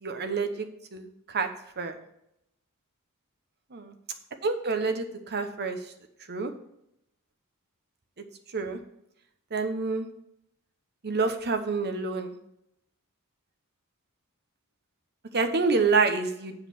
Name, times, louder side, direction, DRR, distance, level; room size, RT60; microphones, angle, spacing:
voice 1, 0.0-1.5 1.8-2.0 3.7-3.9 4.4-5.8 6.3-6.5 8.5-8.8 9.5-10.1 11.0-12.4 15.3-16.5, right 4 dB, 50° right, 7 dB, 1.0 m, -27 dB
8.4 x 4.9 x 6.2 m, 0.78 s
head